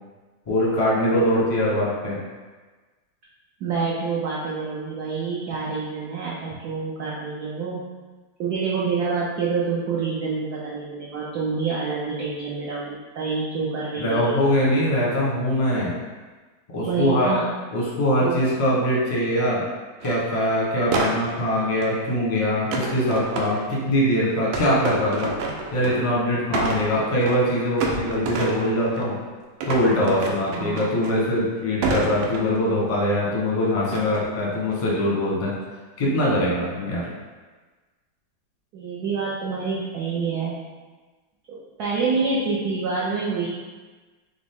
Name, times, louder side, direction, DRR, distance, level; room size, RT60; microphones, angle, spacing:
voice 1, 0.5-2.2 14.0-15.9 16.7-17.3 17.7-19.6 20.0-25.3 25.7-29.2 29.7-35.5 36.0-37.1, equal, 30° left, -5 dB, 0.6 m, -22 dB
voice 2, 3.6-7.8 8.4-14.4 16.9-17.5 18.2-18.4 30.5-31.1 38.7-40.5 41.5-43.5, right 4 dB, 65° right, -6 dB, 1.0 m, -27 dB
sound 1, 20.0-20.2 20.9-22.0 22.7-23.9 24.5-26.1 26.4-27.5 27.8-29.2 29.6-31.4 31.8-32.8 33.9-34.3 34.7-35.1, right 3 dB, 85° right, 1.4 m, -29 dB
6.0 x 2.0 x 3.5 m, 1.3 s
omnidirectional pair, 2.2 m